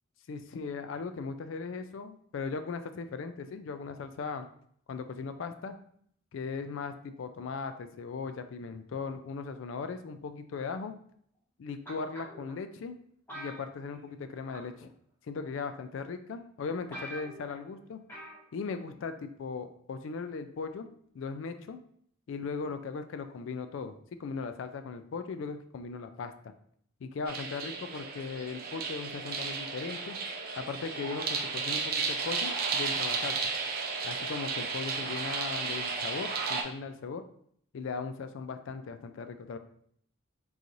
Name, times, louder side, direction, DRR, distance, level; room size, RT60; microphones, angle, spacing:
voice 1, 0.3-4.5 4.9-5.7 6.3-10.9 11.6-12.9 13.3-14.9 15.3-18.0 18.5-20.9 21.1-21.8 22.3-26.5 27.0-30.2 30.6-33.5 34.0-37.2 37.7-39.6, left 4 dB, 70° left, 9 dB, 0.3 m, -38 dB
sound 1, 11.9-12.5 13.3-14.2 14.5-14.8 15.7-15.8 16.3-16.4 16.6-16.7 16.9-17.6 18.1-18.4 18.7-18.8, equal, 10° left, 1.2 m, -44 dB
sound 2, 27.3-36.6, right 4 dB, 45° right, 0.5 m, -33 dB
3.8 x 3.0 x 2.6 m, 0.64 s
head